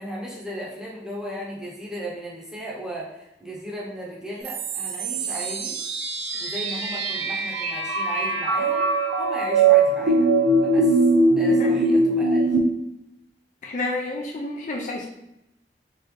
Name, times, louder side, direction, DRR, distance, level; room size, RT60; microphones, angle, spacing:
voice 1, 0.0-5.8 6.4-10.3 10.6-11.0 11.4-12.5, equal, 5° right, -5 dB, 0.8 m, -36 dB
sound 1, 4.4-12.6, right 3 dB, 90° right, 0.5 m, -21 dB
voice 2, 13.6-15.1, left 2 dB, 45° left, 1 dB, 0.4 m, -30 dB
3.7 x 2.6 x 3.2 m, 0.86 s
head